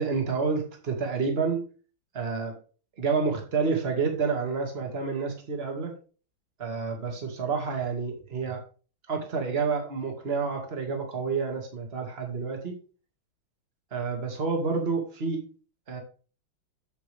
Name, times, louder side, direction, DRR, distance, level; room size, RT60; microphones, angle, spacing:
voice 1, 0.0-1.6 2.1-2.6 3.0-5.9 6.6-8.6 9.1-12.7 13.9-15.4 15.9-16.0, right 5 dB, 30° right, 3 dB, 2.0 m, -29 dB
8.6 x 7.7 x 3.4 m, 0.37 s
omnidirectional pair, 2.2 m